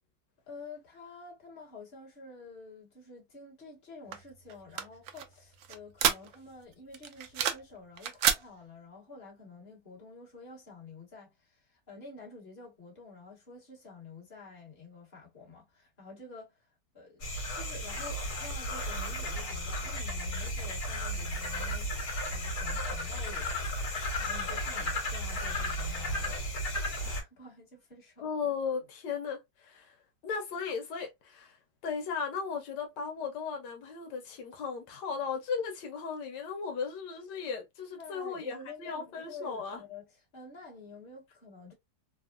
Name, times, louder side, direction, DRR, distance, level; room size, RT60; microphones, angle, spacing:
voice 1, 0.5-16.7 16.9-17.2 17.5-26.4 27.0-28.3 38.0-41.7, left 3 dB, 35° left, 1.5 m, -49 dB
sound 1, 4.1-6.6 6.9-7.7 8.0-8.4, right 8 dB, 70° right, 0.8 m, -30 dB
sound 2, 17.2-27.2, left 1 dB, 60° left, 1.7 m, -34 dB
voice 2, 28.2-29.9 30.2-31.6 31.8-39.8, left 5 dB, 85° left, 1.4 m, -36 dB
3.5 x 2.1 x 2.4 m
omnidirectional pair, 1.8 m